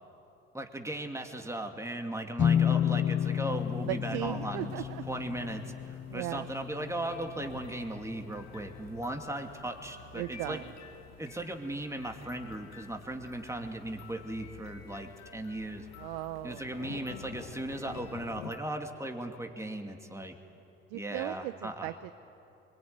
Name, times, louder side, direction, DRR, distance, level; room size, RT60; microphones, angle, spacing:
voice 1, 0.5-4.7 5.1-10.6 11.2-15.9 16.4-20.4 20.9-21.9, right 1 dB, 10° right, 4 dB, 2.6 m, -37 dB
sound 1, 2.4-8.0, left 9 dB, 40° left, 0.8 m, -31 dB
sound 2, 3.5-18.5, left 7 dB, 90° left, 1.1 m, -51 dB
voice 2, 3.8-5.0 6.1-6.5 10.1-10.7 16.0-16.7 20.9-22.1, right 16 dB, 80° right, 13 dB, 0.6 m, -37 dB
sound 3, 7.1-18.8, left 8 dB, 65° left, 2.2 m, -55 dB
23.5 x 21.5 x 9.6 m, 2.8 s
hypercardioid pair, 50°, 29 cm